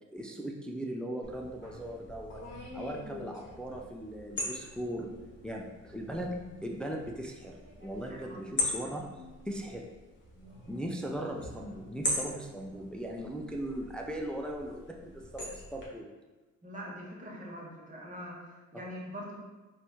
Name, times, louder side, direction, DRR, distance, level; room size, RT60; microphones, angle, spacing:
voice 1, 0.1-2.4 2.7-5.1 5.4-9.1 9.5-9.9 10.7-16.1, right 1 dB, 5° left, 1 dB, 0.4 m, -38 dB
sound 1, 1.2-15.8, left 1 dB, 40° left, 1.5 m, -41 dB
voice 2, 8.1-8.4 16.6-19.3, equal, 25° right, -4 dB, 1.2 m, -43 dB
4.1 x 2.7 x 3.5 m, 1.2 s
cardioid pair, 90°, 30 cm